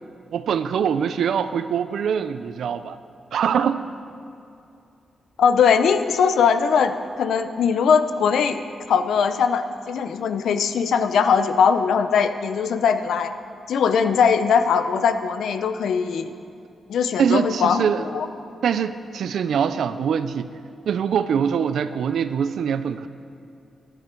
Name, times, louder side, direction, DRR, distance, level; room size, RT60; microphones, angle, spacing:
voice 1, 0.3-3.0 3.3-3.8 17.2-18.0 18.6-20.5 20.9-23.1, right 7 dB, 70° right, 11 dB, 0.5 m, -23 dB
voice 2, 5.4-8.6 8.9-13.3 13.7-16.3 16.9-18.3, left 6 dB, 85° left, 10 dB, 0.7 m, -20 dB
18.5 x 11.5 x 4.5 m, 2.6 s
wide cardioid pair, 155°, 0 cm